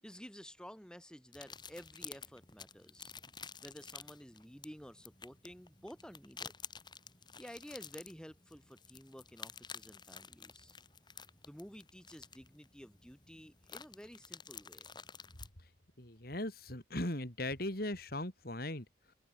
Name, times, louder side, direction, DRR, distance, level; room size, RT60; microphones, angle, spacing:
voice 1, 0.0-3.1 3.6-6.5 7.4-10.8 11.4-14.9, equal, 5° left, 6.5 m, -52 dB
sound 1, 1.3-15.5, left 6 dB, 20° left, 5.6 m, -52 dB
voice 2, 16.0-19.1, left 1 dB, 50° left, 4.2 m, -39 dB
open air
head